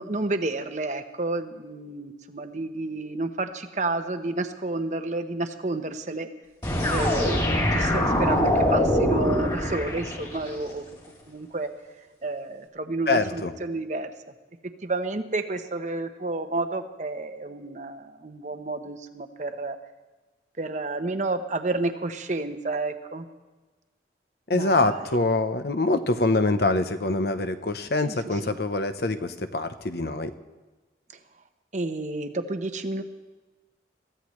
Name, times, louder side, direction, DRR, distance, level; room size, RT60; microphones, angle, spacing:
voice 1, 0.0-6.3 6.9-7.4 7.7-10.8 11.3-11.7 12.2-14.1 14.8-19.8 20.6-23.3 24.5-25.2 28.1-28.6 31.7-33.0, right 2 dB, 40° right, 8 dB, 0.9 m, -30 dB
sound 1, 6.6-10.6, left 1 dB, 25° left, 2.7 m, -23 dB
voice 2, 13.1-13.5 24.5-30.3, left 2 dB, 60° left, 10 dB, 0.9 m, -24 dB
22.0 x 15.0 x 3.2 m, 1.2 s
head